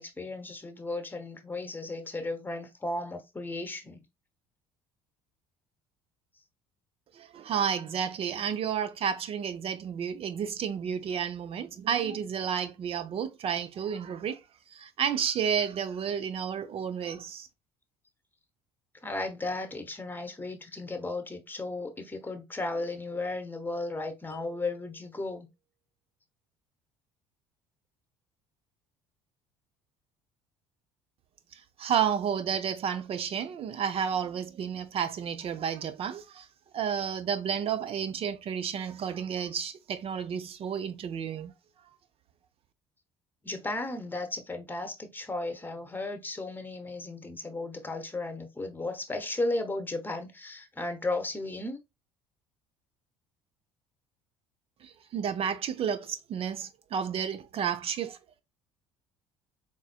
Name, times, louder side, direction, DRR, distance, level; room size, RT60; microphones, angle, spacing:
voice 1, 0.0-4.0 19.0-25.5 43.4-51.8, left 2 dB, 15° left, 1.0 m, -35 dB
voice 2, 7.1-14.4 14.7-17.5 31.5-36.5 36.7-41.5 54.8-58.2, right 8 dB, 45° right, 0.6 m, -31 dB
sound 1, 24.3-25.5, right 7 dB, 85° right, 1.8 m, -56 dB
4.0 x 3.7 x 2.2 m
hypercardioid pair, 65°, 13 cm